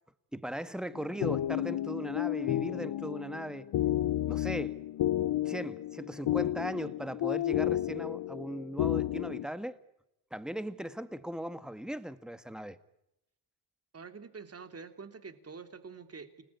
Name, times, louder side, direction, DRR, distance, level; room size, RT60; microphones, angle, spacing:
voice 1, 0.3-3.7 4.3-4.8 5.4-9.8 10.3-12.8, equal, ahead, 1.7 m, -38 dB
sound 1, 0.9-9.5, left 13 dB, 60° left, 1.0 m, -32 dB
voice 2, 13.9-16.4, right 5 dB, 30° right, 3.2 m, -46 dB
29.5 x 19.5 x 9.8 m
cardioid pair, 95°, 46 cm